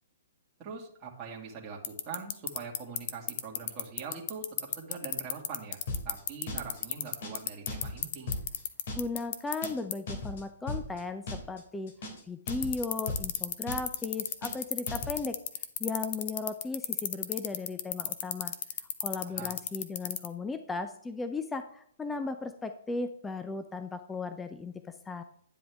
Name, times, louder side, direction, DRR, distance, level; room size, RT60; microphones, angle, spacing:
voice 1, 0.6-8.3 19.3-19.6, right 5 dB, 25° right, -2 dB, 2.1 m, -43 dB
sound 1, 1.8-9.7 9.9-10.0 12.5-20.3, left 12 dB, 45° left, 0.9 m, -30 dB
sound 2, 5.9-6.2 6.5-6.8 7.1-7.4 7.7-8.0 8.3-8.6 8.9-9.2 9.5-9.8 10.1-10.4 10.7-11.0 11.3-11.6 11.9-12.2 12.5-12.8 13.1-13.4 13.7-14.0 14.3-14.6 14.9-15.2, left 2 dB, 60° left, 2.9 m, -37 dB
voice 2, 8.9-11.9 12.3-15.4 15.8-18.5 19.0-25.2, left 3 dB, 10° left, 9 dB, 0.6 m, -36 dB
11.0 x 7.7 x 3.5 m, 0.66 s
hypercardioid pair, 145°, 0 cm